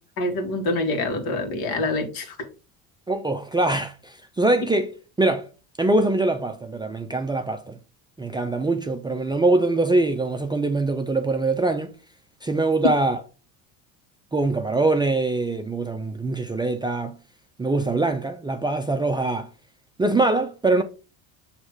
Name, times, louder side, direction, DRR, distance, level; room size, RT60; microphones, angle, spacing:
voice 1, 0.2-2.5 12.8-12.9, left 2 dB, 60° left, 1.8 m, -25 dB
voice 2, 3.1-4.9 5.2-5.5 5.8-7.8 8.2-11.9 12.4-13.2 14.3-17.2 17.6-19.5 20.0-20.8, right 2 dB, 10° right, 0.4 m, -23 dB
6.2 x 3.2 x 4.7 m
supercardioid pair, 105°, 41 cm